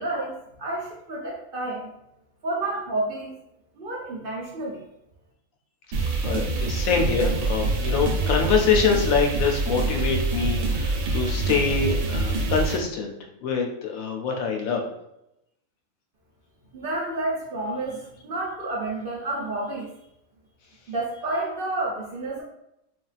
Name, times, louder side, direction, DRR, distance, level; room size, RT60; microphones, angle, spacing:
voice 1, 0.0-1.9 2.4-3.3 3.8-4.8 16.7-19.9 20.9-22.4, right 2 dB, 55° right, -5 dB, 0.7 m, -30 dB
sound 1, 5.9-12.8, right 3 dB, 80° right, 1.0 m, -25 dB
voice 2, 6.2-13.2 13.4-14.8, left 5 dB, 80° left, 2 dB, 1.0 m, -25 dB
3.3 x 2.3 x 2.4 m, 0.82 s
omnidirectional pair, 1.4 m